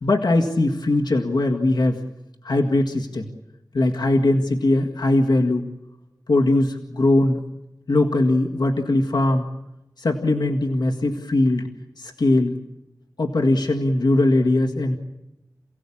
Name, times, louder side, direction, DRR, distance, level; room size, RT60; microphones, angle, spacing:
voice 1, 0.0-2.0 2.4-3.3 3.7-5.7 6.3-7.4 7.9-9.5 10.0-11.7 12.0-12.6 13.2-15.0, left 2 dB, 85° left, 1 dB, 1.9 m, -20 dB
28.5 x 17.0 x 8.6 m, 0.97 s
wide cardioid pair, 70°, 7 cm